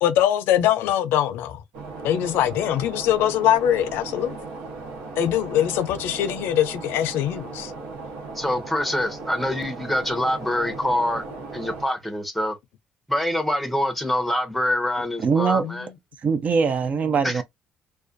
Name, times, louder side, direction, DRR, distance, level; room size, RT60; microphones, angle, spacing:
voice 1, 0.0-1.6 2.0-4.4 5.2-7.7 15.6-15.9, left 11 dB, 85° left, 0.4 m, -22 dB
sound 1, 1.7-11.8, right 3 dB, 90° right, 0.8 m, -37 dB
voice 2, 8.3-12.6 13.1-15.9 17.2-17.4, left 1 dB, ahead, 0.7 m, -25 dB
voice 3, 15.2-15.6 16.2-17.4, right 5 dB, 45° right, 0.4 m, -22 dB
2.4 x 2.2 x 2.5 m
cardioid pair, 110°, 4 cm